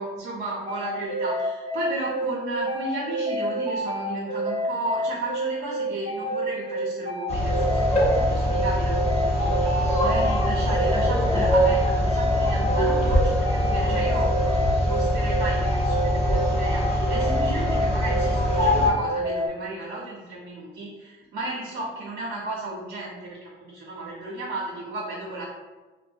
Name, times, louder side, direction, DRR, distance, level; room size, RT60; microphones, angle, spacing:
voice 1, 0.0-25.5, right 2 dB, 75° right, -7 dB, 0.7 m, -34 dB
sound 1, 0.7-19.5, equal, 35° right, 0.6 m, -29 dB
sound 2, 7.3-18.9, equal, 30° left, 0.7 m, -23 dB
2.5 x 2.1 x 2.5 m, 1.2 s
cardioid pair, 90°, 20 cm